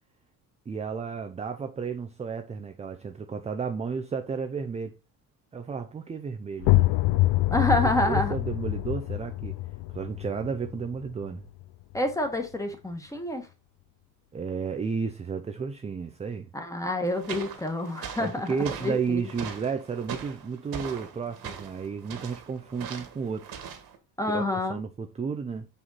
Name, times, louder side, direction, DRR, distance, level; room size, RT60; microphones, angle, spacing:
voice 1, 0.7-5.0 5.5-6.9 7.8-9.6 9.9-11.4 14.3-16.5 18.2-23.5 24.2-24.4 24.7-25.7, right 5 dB, 15° right, 0.5 m, -32 dB
sound 1, 6.6-12.1, left 17 dB, 80° left, 0.6 m, -26 dB
voice 2, 7.5-8.3 11.9-13.5 16.5-18.5 18.8-19.3 24.2-24.8, left 1 dB, 10° left, 1.4 m, -28 dB
sound 2, 17.1-24.0, right 7 dB, 60° right, 1.7 m, -40 dB
5.6 x 5.1 x 4.0 m
cardioid pair, 125°, 41 cm